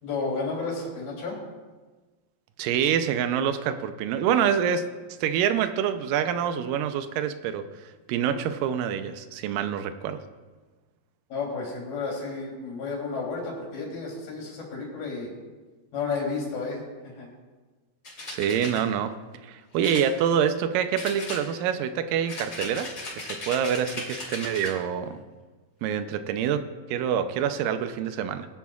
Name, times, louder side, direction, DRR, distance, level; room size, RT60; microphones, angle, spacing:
voice 1, 0.0-1.4 11.3-15.3 15.9-16.8 17.2-17.3, left 4 dB, 90° left, -2 dB, 4.9 m, -32 dB
voice 2, 2.6-4.8 5.1-7.6 8.1-10.2 18.3-19.1 19.4-22.9 23.2-25.2 25.8-26.6 26.9-28.5, right 8 dB, 80° right, 10 dB, 2.2 m, -26 dB
sound 1, 18.0-18.8 19.8-20.6 21.0-21.8 22.3-24.8, left 2 dB, 30° left, 3.4 m, -37 dB
20.0 x 10.5 x 2.4 m, 1.3 s
omnidirectional pair, 4.1 m